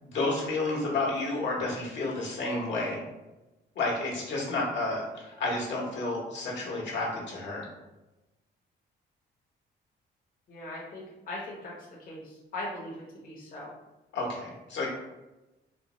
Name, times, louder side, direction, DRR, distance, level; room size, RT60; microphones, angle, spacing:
voice 1, 0.0-3.0 3.8-7.7 14.1-14.9, left 2 dB, 65° left, -3 dB, 1.2 m, -31 dB
voice 2, 10.5-11.7 12.1-12.9 13.2-13.7, left 1 dB, 45° left, -5 dB, 1.0 m, -39 dB
4.3 x 2.0 x 3.0 m, 1.0 s
cardioid pair, 90°, 20 cm